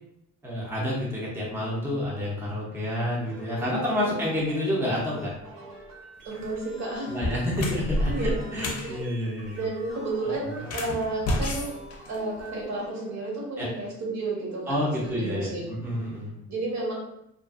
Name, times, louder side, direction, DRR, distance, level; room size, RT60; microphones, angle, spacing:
voice 1, 0.4-5.3 7.1-9.6 13.6-13.7 14.7-16.3, left 1 dB, 10° right, -5 dB, 0.5 m, -29 dB
sound 1, 3.2-13.7 14.8-15.5, right 2 dB, 85° right, 0.9 m, -47 dB
voice 2, 3.6-4.1 6.2-7.2 8.1-9.1 9.5-11.8 12.1-14.8 15.0-15.7 16.5-16.9, right 2 dB, 65° right, -4 dB, 1.1 m, -32 dB
sound 2, 6.3-6.6 7.1-8.9 10.6-12.6, left 1 dB, 55° left, 0.5 m, -30 dB
2.5 x 2.4 x 2.3 m, 0.79 s
cardioid pair, 135°, 31 cm